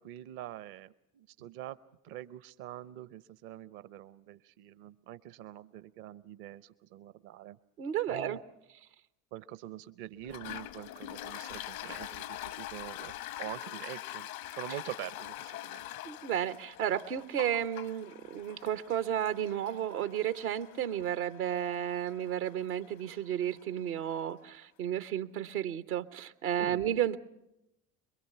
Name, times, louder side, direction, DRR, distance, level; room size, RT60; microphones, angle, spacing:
voice 1, 0.0-1.8 2.0-7.6 8.1-8.4 9.3-13.1 13.4-15.9 26.6-26.9, right 13 dB, 55° right, 15 dB, 0.8 m, -45 dB
voice 2, 7.8-8.4 16.0-27.2, right 10 dB, 80° right, 11 dB, 1.1 m, -33 dB
Toilet flush, 10.2-23.6, left 14 dB, 75° left, 1.0 m, -44 dB
23.5 x 23.0 x 5.7 m, 0.87 s
hypercardioid pair, 60°, 43 cm